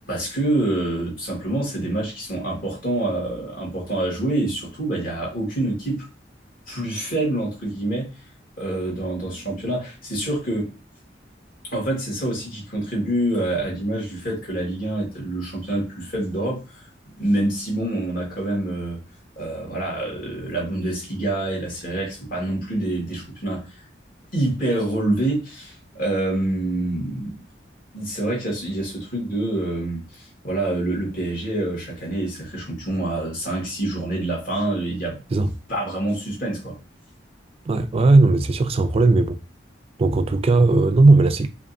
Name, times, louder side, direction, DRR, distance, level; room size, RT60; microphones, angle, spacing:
voice 1, 0.1-6.0 6.7-8.1 8.6-10.7 11.7-16.8 17.2-19.0 19.4-23.6 24.3-27.4 27.9-35.2 35.7-36.8, right 1 dB, 55° left, 1.9 m, -26 dB
voice 2, 37.7-39.4 40.0-41.5, right 3 dB, 30° right, 0.3 m, -17 dB
5.0 x 2.5 x 2.7 m
head